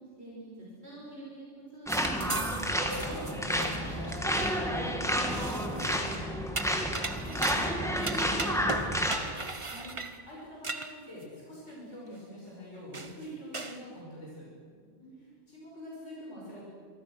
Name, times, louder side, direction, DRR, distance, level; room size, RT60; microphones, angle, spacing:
voice 1, 0.1-2.5 9.7-9.9 14.7-15.4, right 2 dB, 60° right, -6 dB, 6.1 m, -47 dB
sound 1, 1.9-9.2, equal, ahead, 2.4 m, -30 dB
sound 2, 1.9-4.6 5.3-6.2 6.6-11.2 11.7-11.8 12.4-12.5 12.9-13.2 13.5-13.8, right 3 dB, 25° right, 1.1 m, -38 dB
sound 3, 2.8-5.6 6.1-6.2 6.4-6.5 6.8-6.9 7.8-7.9 8.3-8.4, equal, 50° left, 7.3 m, -45 dB
voice 2, 2.9-9.3 10.3-14.5 15.2-16.6, equal, 75° left, -5 dB, 6.3 m, -45 dB
26.5 x 23.5 x 6.4 m, 2.1 s
omnidirectional pair, 1.2 m